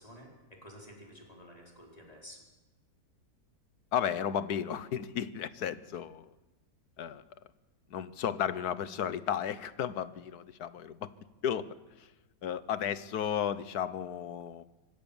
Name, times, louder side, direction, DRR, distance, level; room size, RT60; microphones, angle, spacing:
voice 1, 0.0-2.4, equal, 25° left, -1 dB, 4.5 m, -51 dB
voice 2, 3.9-6.3 7.0-7.2 7.9-11.1 11.4-11.7 12.4-14.6, left 9 dB, 80° left, 15 dB, 1.4 m, -33 dB
25.0 x 17.5 x 7.1 m, 1.1 s
omnidirectional pair, 1.6 m